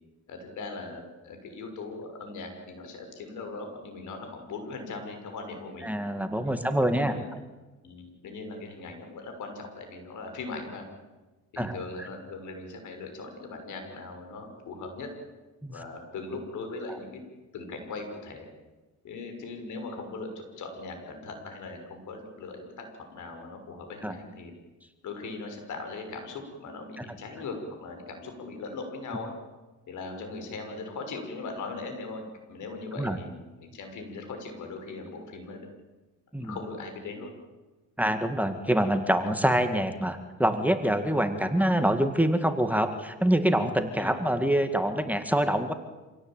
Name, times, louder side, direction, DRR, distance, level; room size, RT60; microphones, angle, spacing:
voice 1, 0.3-5.9 6.4-7.3 7.8-10.8 11.5-15.1 15.7-17.2 17.5-18.5 19.0-24.5 25.0-29.3 29.9-35.7 36.4-37.3 44.0-44.1, left 3 dB, 75° left, 5 dB, 6.3 m, -39 dB
voice 2, 5.8-7.4 11.6-11.8 15.6-15.8 16.9-17.0 24.0-24.2 27.0-27.1 33.0-33.2 36.3-36.5 38.0-45.7, right 1 dB, 5° right, 7 dB, 2.0 m, -25 dB
26.5 x 17.5 x 9.1 m, 1.2 s
cardioid pair, 90°, 30 cm